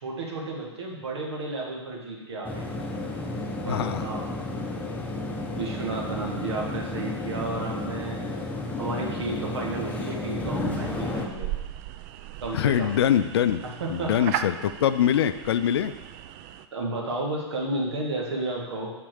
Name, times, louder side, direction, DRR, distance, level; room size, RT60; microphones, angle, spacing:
voice 1, 0.0-2.7 3.6-4.3 5.4-8.3 8.8-11.5 12.4-12.9 13.6-14.2 16.7-18.9, right 2 dB, 65° right, -1 dB, 1.8 m, -32 dB
sound 1, 2.4-11.3, left 2 dB, 10° left, 0.9 m, -32 dB
voice 2, 3.7-4.1 12.5-13.6 13.9-16.0, left 10 dB, 60° left, 12 dB, 0.5 m, -23 dB
sound 2, 10.6-16.7, right 11 dB, 40° right, 0.4 m, -37 dB
6.1 x 4.4 x 6.4 m, 1.1 s
figure-of-eight pair, 100°, 15 cm